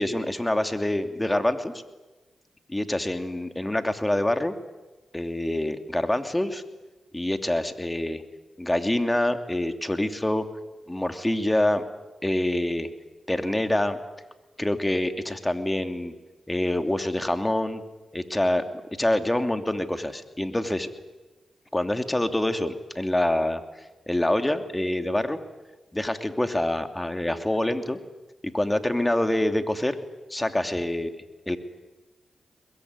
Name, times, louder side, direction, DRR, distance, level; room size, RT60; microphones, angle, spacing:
voice 1, 0.0-1.7 2.7-4.5 5.1-6.6 7.1-8.2 8.6-10.5 10.9-11.8 12.2-12.9 13.3-14.0 14.6-16.1 16.5-17.8 18.1-18.6 19.0-20.9 21.7-23.6 24.1-25.4 25.9-28.0 28.5-30.0 30.3-31.1 31.5-31.6, left 1 dB, 15° left, 7 dB, 2.8 m, -26 dB
22.0 x 21.5 x 9.8 m, 1.1 s
supercardioid pair, 45°, 0 cm